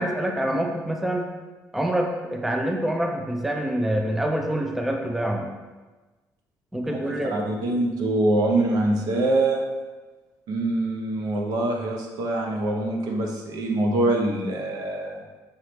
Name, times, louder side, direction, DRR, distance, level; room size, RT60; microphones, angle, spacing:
voice 1, 0.0-1.3 1.7-5.5 6.7-7.4, right 1 dB, 5° right, 2 dB, 0.3 m, -26 dB
voice 2, 6.8-9.6 10.5-15.2, right 2 dB, 75° right, 1 dB, 0.7 m, -24 dB
5.6 x 3.0 x 3.1 m, 1.2 s
cardioid pair, 155°, 7 cm